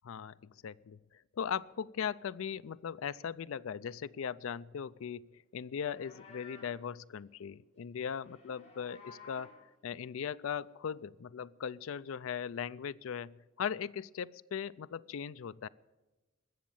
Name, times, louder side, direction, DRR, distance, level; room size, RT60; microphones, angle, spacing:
voice 1, 0.0-0.3 0.6-1.0 1.4-9.5 9.8-15.7, left 7 dB, 80° left, 15 dB, 0.4 m, -39 dB
Livestock farm animals working animals, 5.7-6.8 8.1-9.6, left 4 dB, 35° left, 4.0 m, -54 dB
20.5 x 7.3 x 7.1 m, 1.1 s
head